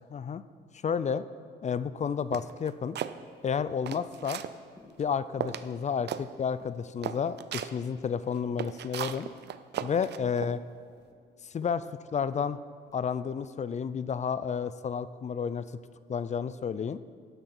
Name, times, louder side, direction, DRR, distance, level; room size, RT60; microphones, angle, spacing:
voice 1, 0.1-0.4 0.8-1.2 1.6-3.0 3.4-4.4 5.0-9.3 9.8-10.6 11.4-11.8 12.1-12.6 12.9-15.6 16.1-17.0, left 6 dB, 35° left, 15 dB, 0.4 m, -31 dB
sound 1, 2.3-3.1 3.6-4.5 5.0-5.1 5.4-5.7 6.1-6.2 6.6-6.7 7.0-7.7 8.3-10.5, right 10 dB, 60° right, 0.5 m, -36 dB
sound 2, 4.1-4.4 4.8-5.0 5.4-5.7 6.0-6.2 6.5-6.8 7.2-7.5 7.8-8.7 9.1-9.4 9.7-10.0 10.3-11.2 11.6-11.8 12.2-12.4 12.9-13.2, left 2 dB, 15° left, 2.2 m, -56 dB
12.0 x 10.5 x 4.3 m, 2.1 s
cardioid pair, 90°, 20 cm